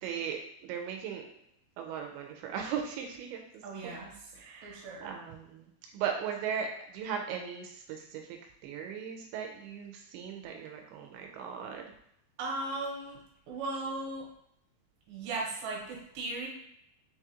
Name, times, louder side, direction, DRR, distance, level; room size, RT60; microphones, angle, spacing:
voice 1, 0.0-1.3 1.8-3.4 3.8-4.0 4.4-5.6 5.9-6.7 6.9-8.2 8.6-11.8, right 7 dB, 90° right, 3 dB, 2.5 m, -37 dB
voice 2, 3.6-4.1 4.6-5.1 12.4-13.2 13.5-14.3 15.1-16.5, right 2 dB, 70° right, -2 dB, 2.5 m, -37 dB
6.0 x 2.4 x 2.9 m, 0.76 s
omnidirectional pair, 4.4 m